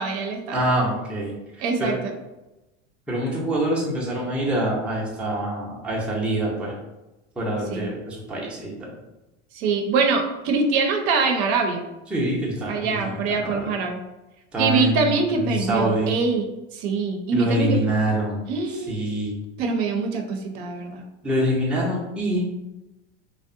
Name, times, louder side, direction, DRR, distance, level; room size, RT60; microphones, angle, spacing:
voice 1, 0.0-0.6 1.6-2.0 7.7-7.9 9.5-11.9 12.7-14.0 14.6-16.5 16.7-17.8 18.5-19.0 19.6-21.0, right 4 dB, 65° right, 4 dB, 0.6 m, -24 dB
voice 2, 0.5-1.3 1.8-1.9 3.1-6.7 7.4-8.9 12.1-13.7 14.5-16.1 17.3-18.4 18.9-19.4 21.2-22.5, right 1 dB, 5° right, -4 dB, 0.5 m, -25 dB
2.6 x 2.1 x 2.5 m, 1.0 s
supercardioid pair, 115°, 35 cm